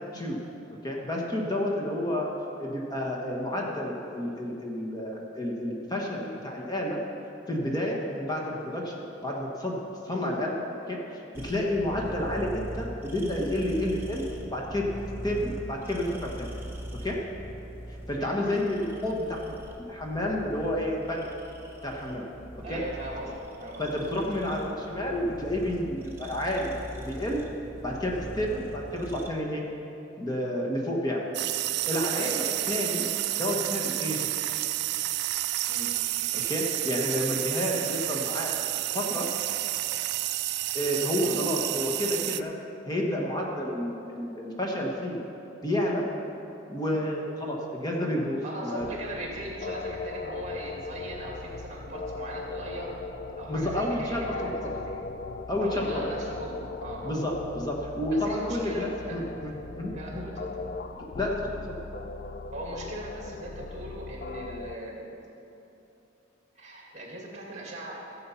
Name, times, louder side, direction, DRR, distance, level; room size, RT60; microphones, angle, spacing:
voice 1, 0.8-2.3 2.6-7.0 7.5-9.8 10.0-10.5 10.9-14.2 14.5-14.9 15.2-16.5 17.0-17.2 17.9-21.3 21.8-22.2 22.7-22.8 23.8-27.4 27.8-29.6 30.2-31.3 31.9-32.4 32.7-33.1 33.4-34.3 36.3-38.5 38.9-39.3 40.7-42.5 42.9-45.2 45.6-46.0 46.7-48.9 53.5-54.7 55.5-56.1 57.0-60.2 61.1-61.8, left 1 dB, 20° left, -2 dB, 1.3 m, -30 dB
sound 1, 11.3-29.3, right 1 dB, 15° right, 1.3 m, -41 dB
voice 2, 18.2-18.6 22.6-23.3 23.6-23.8 32.1-32.5 35.7-35.9 41.2-41.4 48.4-53.0 53.4-54.9 55.6-57.5 58.1-59.2 59.9-60.7 62.5-65.0 66.5-68.0, right 1 dB, 40° right, -2 dB, 2.4 m, -39 dB
sound 2, 31.3-42.4, right 15 dB, 60° right, 0.4 m, -30 dB
sound 3, 48.8-64.8, left 3 dB, 50° left, 0.5 m, -39 dB
15.5 x 7.7 x 5.7 m, 2.9 s
head